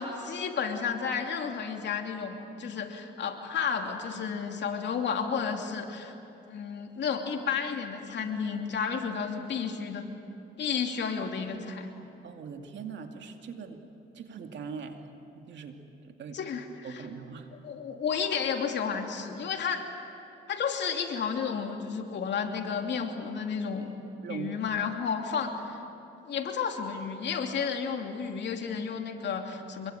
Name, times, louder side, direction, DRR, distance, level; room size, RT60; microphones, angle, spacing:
voice 1, 0.0-6.1 6.5-10.1 10.6-11.9 16.3-17.1 17.6-19.9 20.5-23.9 24.3-25.8 26.3-29.9, left 6 dB, 65° left, 3 dB, 2.9 m, -32 dB
voice 2, 12.2-13.8 14.1-15.0 15.3-15.8 16.0-16.4 16.8-17.5 24.2-24.5, right 6 dB, 65° right, 5 dB, 2.4 m, -41 dB
26.0 x 22.5 x 9.1 m, 2.8 s
cardioid pair, 90°, 20 cm